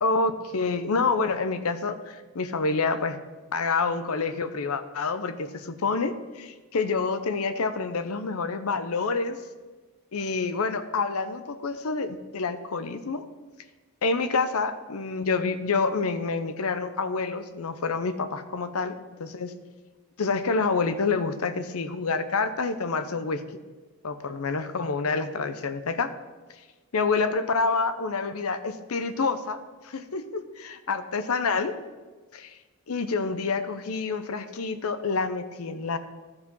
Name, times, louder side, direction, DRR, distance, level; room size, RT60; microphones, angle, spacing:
voice 1, 0.0-3.2 3.5-9.4 10.1-13.2 14.0-19.5 20.2-23.4 24.0-26.1 26.9-29.6 29.8-31.8 32.3-32.6 32.9-36.0, left 4 dB, 75° left, 11 dB, 0.7 m, -28 dB
12.5 x 4.9 x 5.4 m, 1.3 s
head